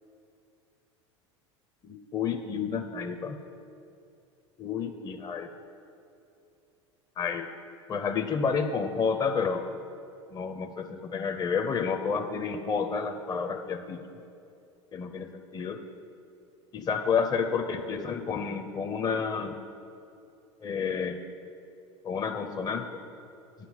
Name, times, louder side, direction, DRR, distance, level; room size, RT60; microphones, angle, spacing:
voice 1, 1.8-3.4 4.6-5.5 7.2-7.5 7.9-9.6 10.3-14.2 14.9-15.8 16.7-19.5 20.6-21.2 22.0-22.8, left 6 dB, 25° left, 5 dB, 0.6 m, -30 dB
9.8 x 5.7 x 7.3 m, 2.7 s
hypercardioid pair, 80°, 15 cm